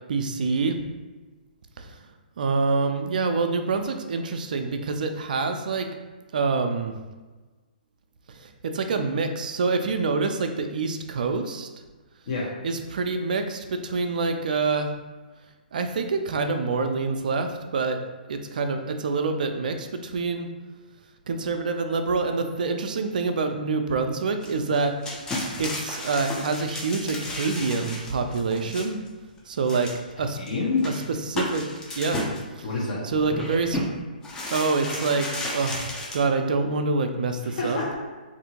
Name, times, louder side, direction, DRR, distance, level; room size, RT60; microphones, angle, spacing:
voice 1, 0.1-0.8 1.8-1.9 2.4-5.9 6.3-6.9 8.4-11.7 12.6-14.9 15.7-18.0 18.3-20.5 21.3-24.9 25.6-29.0 29.5-29.9 30.2-30.4 30.8-30.9 31.3-31.6 32.0-32.2 32.6-32.7 33.0-33.8 34.5-37.8, right 4 dB, 60° right, 6 dB, 0.3 m, -26 dB
sound 1, 24.4-29.1 29.6-30.1 30.5-30.6 30.8-32.4 33.1-33.9 34.2-36.2, left 1 dB, 15° left, 0.4 m, -33 dB
voice 2, 30.4-30.9 32.6-33.0 37.4-38.0, left 3 dB, 55° left, -3 dB, 0.7 m, -27 dB
2.7 x 2.5 x 2.8 m, 1.3 s
figure-of-eight pair, 130°, 5 cm